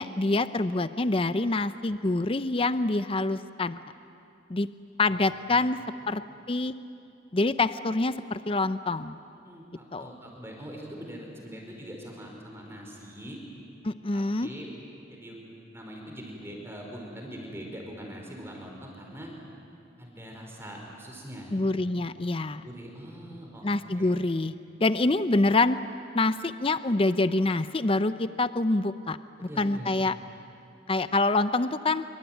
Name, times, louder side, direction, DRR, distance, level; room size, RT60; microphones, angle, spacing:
voice 1, 0.0-3.8 4.5-4.7 5.0-5.8 6.1-6.2 6.5-6.7 7.3-9.2 9.9-10.1 13.8-14.5 21.5-22.7 23.6-24.5 24.8-25.8 26.1-29.2 29.6-30.2 30.9-32.0, left 2 dB, 30° left, 12 dB, 0.6 m, -26 dB
voice 2, 9.4-13.4 14.1-14.7 15.1-15.4 15.7-19.3 20.0-21.6 22.6-23.7 23.9-24.1 29.4-29.9, equal, 15° right, 0 dB, 5.0 m, -42 dB
26.0 x 24.5 x 9.2 m, 2.7 s
head